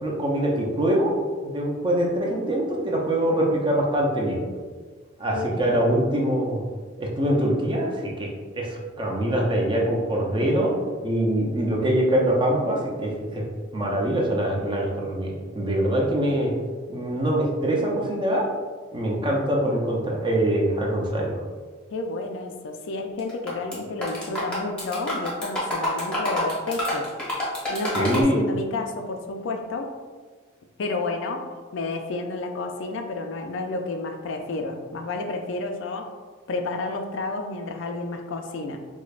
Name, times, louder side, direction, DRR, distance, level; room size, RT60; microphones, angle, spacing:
voice 1, 0.0-1.1 1.4-4.4 5.2-6.6 7.0-10.7 11.0-13.4 13.7-16.5 16.9-18.5 18.9-21.4 27.9-28.4, right 1 dB, 25° right, -2 dB, 0.5 m, -24 dB
voice 2, 5.3-5.8 21.9-27.1 27.7-29.9 30.8-36.1 36.5-38.8, left 3 dB, 65° left, 4 dB, 0.4 m, -31 dB
sound 1, 23.2-23.8 24.0-28.2, left 1 dB, 5° left, 0.9 m, -28 dB
5.0 x 2.1 x 2.4 m, 1.5 s
head